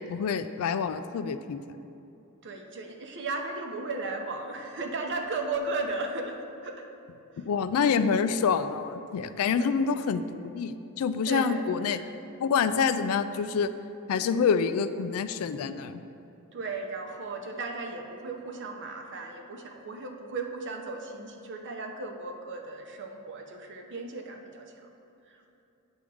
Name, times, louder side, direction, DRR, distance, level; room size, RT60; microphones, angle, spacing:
voice 1, 0.0-1.6 7.4-12.0 12.4-13.7 14.1-16.0, left 6 dB, 70° left, 11 dB, 0.3 m, -27 dB
voice 2, 2.4-6.9 7.4-7.5 9.5-9.8 11.3-12.1 16.5-24.7, right 3 dB, 55° right, 3 dB, 0.7 m, -36 dB
8.8 x 3.6 x 6.1 m, 2.9 s
head